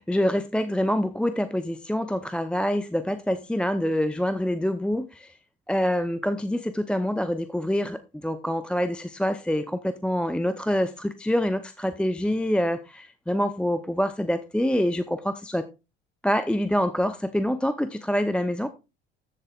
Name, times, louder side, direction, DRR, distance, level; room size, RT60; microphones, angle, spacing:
voice 1, 0.0-5.4 5.7-15.7 16.2-18.7, equal, 5° left, 0.6 m, -26 dB
14.0 x 7.6 x 2.3 m
hypercardioid pair, 60°, 30 cm